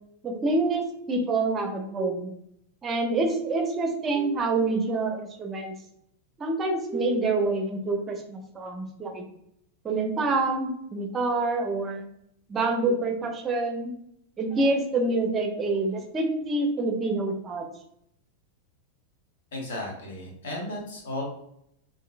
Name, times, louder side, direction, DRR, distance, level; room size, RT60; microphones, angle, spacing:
voice 1, 0.2-2.3 2.8-5.7 6.4-9.2 9.8-12.0 12.5-13.9 14.4-17.6, right 3 dB, 20° right, 4 dB, 0.6 m, -27 dB
voice 2, 19.5-21.2, left 1 dB, 60° left, -1 dB, 1.0 m, -34 dB
3.7 x 2.6 x 2.4 m, 0.74 s
figure-of-eight pair, 90°, 0 cm